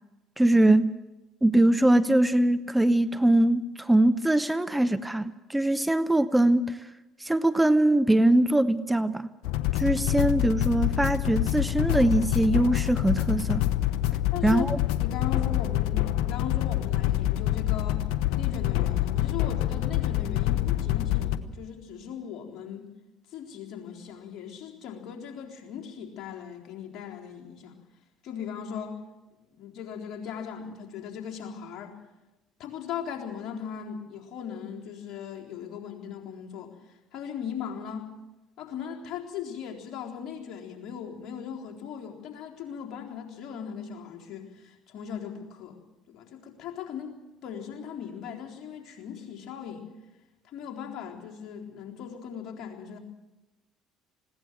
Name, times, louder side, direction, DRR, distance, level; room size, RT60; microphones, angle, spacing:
voice 1, 0.4-1.0 1.4-6.9 7.2-9.3 9.7-13.6 14.4-14.8, right 1 dB, 10° right, 0.8 m, -22 dB
sound 1, 9.4-21.4, left 14 dB, 75° left, 1.0 m, -26 dB
voice 2, 14.3-14.7 14.9-18.0 18.4-22.9 23.3-27.7 28.2-29.0 29.5-32.0 32.6-38.1 38.6-45.8 46.1-47.2 47.4-49.9 50.4-53.0, left 8 dB, 60° left, 3.9 m, -38 dB
20.5 x 17.0 x 7.7 m
hypercardioid pair, 65°, 0 cm